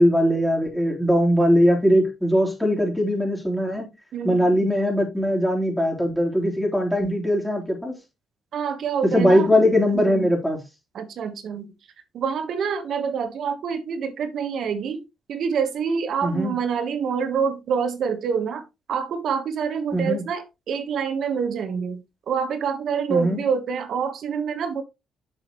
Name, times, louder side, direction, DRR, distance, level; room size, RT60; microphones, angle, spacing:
voice 1, 0.0-3.9 4.2-7.9 9.0-10.6 16.2-16.6 19.9-20.2 23.1-23.4, equal, 5° left, 3.3 m, -20 dB
voice 2, 4.1-4.7 8.5-9.5 9.9-10.3 10.9-11.7 12.1-15.0 15.3-18.6 18.9-24.8, right 6 dB, 65° right, 1.3 m, -26 dB
7.6 x 6.3 x 3.1 m
cardioid pair, 90°, 0 cm